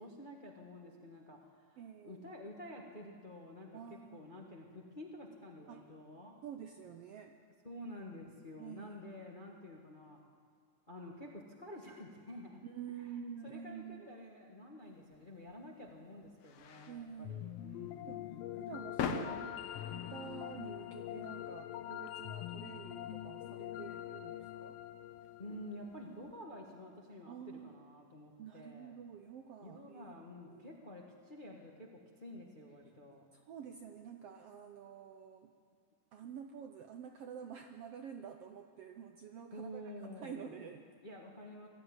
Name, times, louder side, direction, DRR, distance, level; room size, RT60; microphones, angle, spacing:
voice 1, 0.0-6.4 7.6-10.2 10.9-12.6 13.0-13.2 13.4-18.6 25.4-29.0 29.6-33.3 39.5-40.7 41.0-41.7, left 1 dB, 35° left, -1 dB, 0.8 m, -50 dB
voice 2, 1.8-2.2 3.7-4.2 5.7-5.8 6.4-7.3 8.6-9.0 12.6-14.1 16.9-17.4 18.1-18.2 18.6-19.5 19.9-24.8 27.3-27.7 28.4-30.1 30.5-30.8 33.3-35.5 36.1-39.8 40.2-40.9, right 7 dB, 75° right, 5 dB, 1.4 m, -49 dB
sound 1, 15.1-26.4, left 6 dB, 65° left, 1.8 m, -47 dB
sound 2, 17.2-26.4, left 12 dB, 85° left, 1.3 m, -44 dB
19.5 x 14.0 x 9.6 m, 2.1 s
omnidirectional pair, 3.6 m